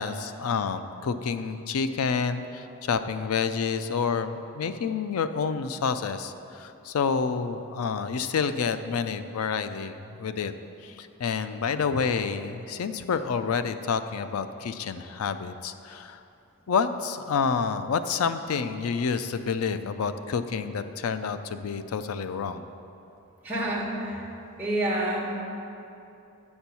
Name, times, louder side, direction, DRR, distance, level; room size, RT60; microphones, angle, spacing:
voice 1, 0.0-10.5 10.8-16.2 16.7-22.6, left 5 dB, 90° left, 11 dB, 0.4 m, -29 dB
voice 2, 23.4-24.3 24.6-25.4, right 1 dB, 10° right, -6 dB, 1.5 m, -28 dB
8.5 x 4.5 x 6.9 m, 2.8 s
head